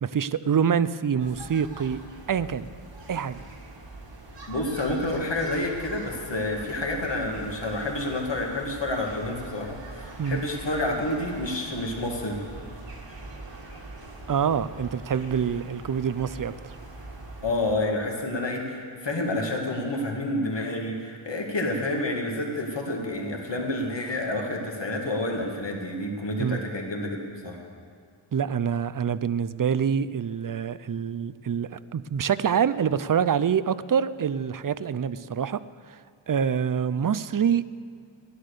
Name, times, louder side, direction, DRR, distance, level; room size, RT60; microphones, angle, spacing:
voice 1, 0.0-2.0 2.3-2.7 3.1-3.4 10.2-10.4 14.3-16.5 26.4-26.6 28.3-35.6 35.9-36.0 36.3-37.7, right 7 dB, 45° right, 16 dB, 0.5 m, -26 dB
sound 1, 1.2-17.7, right 2 dB, 60° right, 2.0 m, -43 dB
voice 2, 4.5-12.4 17.4-27.6, left 1 dB, 60° left, 0 dB, 2.2 m, -29 dB
15.5 x 11.5 x 6.7 m, 2.1 s
wide cardioid pair, 75°, 49 cm